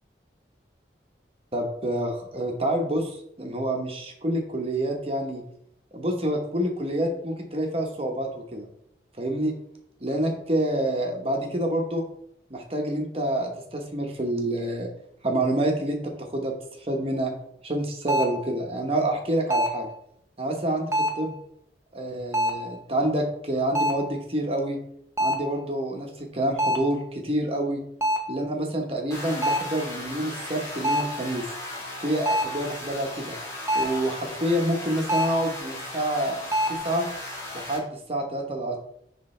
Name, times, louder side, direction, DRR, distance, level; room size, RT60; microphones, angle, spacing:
voice 1, 1.5-5.4 5.9-8.6 9.2-9.5 10.0-12.0 12.5-14.9 15.2-16.5 16.8-17.3 17.6-19.9 20.4-21.3 21.9-24.8 25.2-27.8 28.3-31.4 32.0-33.4 33.7-36.4 36.8-37.1 37.5-38.8, right 1 dB, 35° right, 2 dB, 1.1 m, -27 dB
sound 1, 18.1-18.4 19.5-19.9 20.9-21.3 22.3-22.7 23.7-24.1 25.2-25.6 26.6-27.0 28.0-28.4 29.4-29.8 30.8-31.2 32.3-32.7 33.7-34.0 35.1-35.5 36.5-36.8, right 1 dB, 15° right, 0.6 m, -25 dB
sound 2, 29.1-37.8, left 1 dB, 15° left, 2.0 m, -37 dB
9.7 x 3.4 x 3.3 m, 0.73 s
head